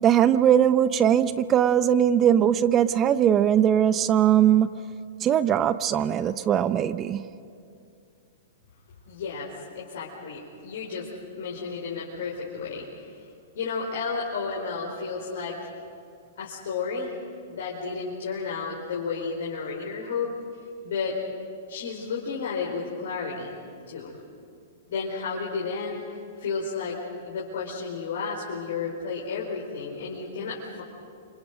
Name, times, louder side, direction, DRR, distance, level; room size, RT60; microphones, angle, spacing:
voice 1, 0.0-4.7 5.2-7.3, right 9 dB, 30° right, 0.9 m, -20 dB
voice 2, 9.1-11.1 11.3-12.9 13.5-15.6 16.4-17.2 17.5-20.3 20.8-21.2 21.7-23.5 23.9-24.2 24.9-26.0 26.4-26.9 27.2-30.8, left 5 dB, 65° left, 4.4 m, -32 dB
30.0 x 26.5 x 5.2 m
hypercardioid pair, 110°, 0 cm